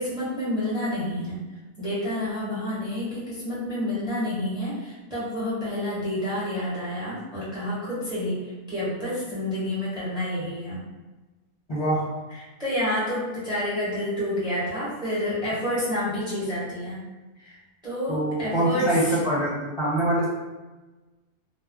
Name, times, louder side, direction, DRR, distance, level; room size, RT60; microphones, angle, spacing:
voice 1, 0.0-1.4 1.8-10.8 12.6-17.0 17.4-17.6 17.8-19.2, left 1 dB, 5° right, -10 dB, 1.0 m, -29 dB
voice 2, 11.7-12.1 18.1-20.3, right 1 dB, 35° left, -9 dB, 1.1 m, -24 dB
2.3 x 2.2 x 3.7 m, 1.2 s
omnidirectional pair, 1.2 m